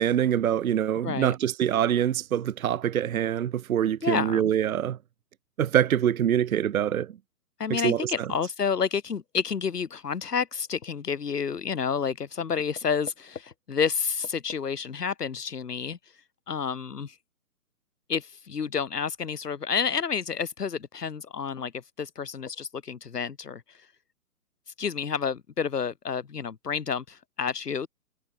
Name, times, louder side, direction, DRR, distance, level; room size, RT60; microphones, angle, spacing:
voice 1, 0.0-5.0 5.6-7.1 7.7-8.0, right 10 dB, 60° right, 0.8 m, -24 dB
voice 2, 1.0-1.3 4.0-4.5 7.6-17.2 18.1-21.7 22.0-23.9 24.8-27.9, left 6 dB, 80° left, 2.0 m, -30 dB
hypercardioid pair, 150°, 46 cm